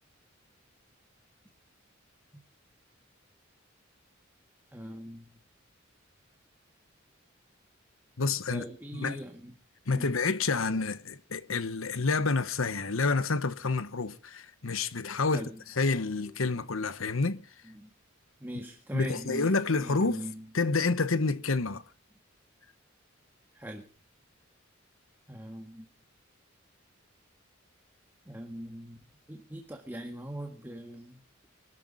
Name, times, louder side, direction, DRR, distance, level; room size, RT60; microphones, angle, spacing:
voice 1, 4.7-5.2 8.5-9.5 9.9-10.2 15.3-15.6 17.6-17.9 18.4-19.5 19.8-20.5 23.5-23.9 25.3-25.9 28.2-29.0 29.3-31.5, equal, 10° right, 1.6 m, -41 dB
voice 2, 8.2-8.6 8.9-9.2 9.9-17.4 18.9-20.2 20.5-21.8, left 3 dB, 90° left, 1.1 m, -29 dB
24.5 x 13.0 x 4.1 m
head